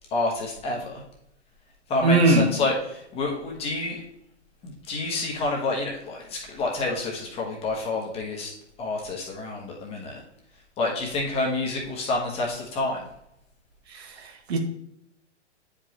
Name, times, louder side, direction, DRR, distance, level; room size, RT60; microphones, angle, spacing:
voice 1, 0.1-1.0 1.9-4.0 4.6-8.5 8.8-10.2 10.8-13.0, left 2 dB, 15° left, -1 dB, 1.2 m, -28 dB
voice 2, 2.0-2.5 13.9-14.6, right 2 dB, 60° right, 3 dB, 1.5 m, -21 dB
8.8 x 5.1 x 3.0 m, 0.79 s
hypercardioid pair, 145°, 36 cm